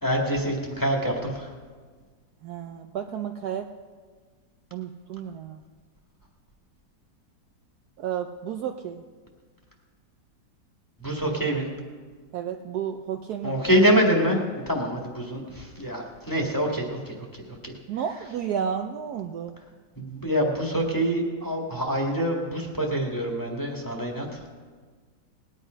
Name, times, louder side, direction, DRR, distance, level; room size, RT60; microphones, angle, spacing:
voice 1, 0.0-1.5 11.0-11.7 13.4-14.4 14.6-17.7 20.0-24.4, equal, 10° left, -1 dB, 1.7 m, -25 dB
voice 2, 2.4-3.7 4.7-5.6 8.0-9.0 12.3-13.5 17.9-19.5, right 8 dB, 70° right, 5 dB, 1.0 m, -32 dB
19.5 x 9.9 x 5.1 m, 1.5 s
omnidirectional pair, 2.1 m